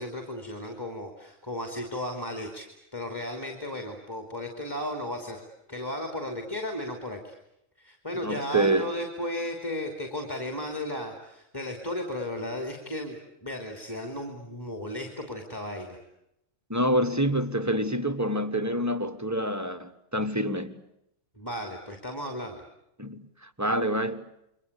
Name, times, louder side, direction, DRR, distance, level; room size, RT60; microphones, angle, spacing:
voice 1, 0.0-5.4 5.7-7.3 7.8-16.0 21.4-22.6, left 1 dB, 20° left, 3.1 m, -35 dB
voice 2, 8.2-8.9 16.7-20.8 23.0-24.3, right 1 dB, 15° right, 1.3 m, -27 dB
29.0 x 23.5 x 8.3 m
omnidirectional pair, 1.3 m